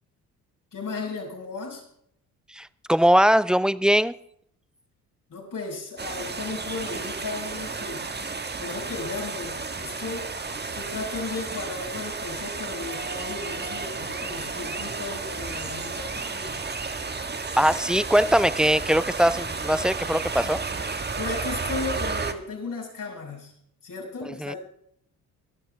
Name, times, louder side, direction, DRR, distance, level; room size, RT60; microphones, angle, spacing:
voice 1, 0.7-1.8 5.3-8.1 8.6-10.3 10.7-16.6 21.2-23.5 23.8-24.6, left 3 dB, 45° left, 0 dB, 6.5 m, -35 dB
voice 2, 2.5-4.1 17.6-20.6 24.4-24.5, equal, ahead, 18 dB, 0.5 m, -21 dB
sound 1, 6.0-22.3, right 4 dB, 25° right, 1.5 m, -32 dB
24.5 x 12.5 x 3.6 m, 0.69 s
hypercardioid pair, 50°, 43 cm